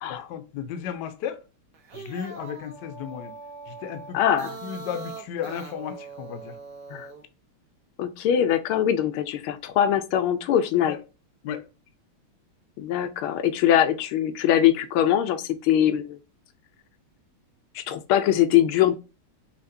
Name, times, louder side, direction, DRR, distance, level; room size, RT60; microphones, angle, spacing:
voice 1, 0.1-1.4 1.9-3.3 3.7-4.2 4.6-6.6 10.8-11.0 11.4-11.6, left 9 dB, 70° left, 1.1 m, -34 dB
sound 1, 1.7-7.2, right 4 dB, 55° right, 1.3 m, -41 dB
voice 2, 4.1-4.6 6.9-7.1 8.0-11.0 12.8-16.2 17.7-18.9, left 10 dB, 85° left, 1.4 m, -22 dB
5.7 x 2.9 x 2.6 m
omnidirectional pair, 2.3 m